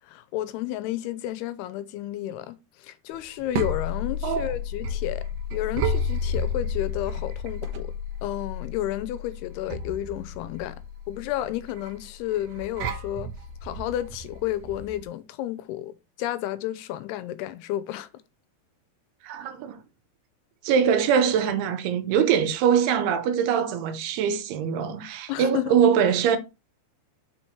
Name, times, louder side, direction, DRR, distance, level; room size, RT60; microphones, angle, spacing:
voice 1, 0.1-7.9 8.2-10.8 11.1-13.3 13.6-18.1 25.3-25.7, left 13 dB, 90° left, 2.7 m, -31 dB
sound 1, 3.1-15.0, left 2 dB, 65° right, 1.7 m, -32 dB
voice 2, 19.2-19.8 20.6-26.4, right 7 dB, 85° right, 2.9 m, -23 dB
6.1 x 4.6 x 4.4 m
omnidirectional pair, 4.5 m